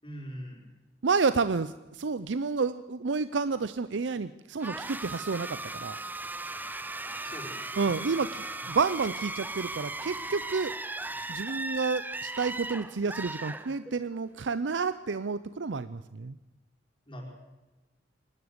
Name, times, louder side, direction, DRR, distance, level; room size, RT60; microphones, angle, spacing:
voice 1, 0.0-0.6 7.2-7.9 8.6-8.7 17.1-17.2, equal, 30° left, -1 dB, 4.7 m, -42 dB
voice 2, 1.0-6.0 7.8-10.7 11.3-16.3, right 4 dB, 75° right, 14 dB, 0.6 m, -30 dB
sound 1, 4.6-14.2, right 2 dB, 10° right, 0.7 m, -37 dB
26.5 x 12.5 x 8.0 m, 1.1 s
head